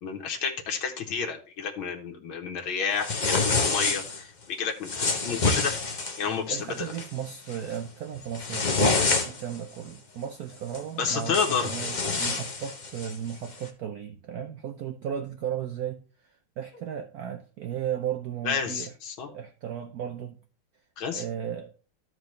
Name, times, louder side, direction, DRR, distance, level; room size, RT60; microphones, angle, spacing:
voice 1, 0.0-4.9 5.2-5.7 6.2-6.9 11.0-11.7 18.4-19.3 21.0-21.2, left 6 dB, 80° left, 1.9 m, -30 dB
sound 1, 3.0-4.2 4.8-6.2 6.7-7.1 7.5-7.8 8.2-9.6 10.7-10.8 11.2-13.2, left 4 dB, 45° left, 0.5 m, -27 dB
voice 2, 6.5-18.9 19.3-20.4 21.1-21.7, right 9 dB, 75° right, 0.8 m, -35 dB
13.5 x 4.7 x 3.2 m
omnidirectional pair, 2.2 m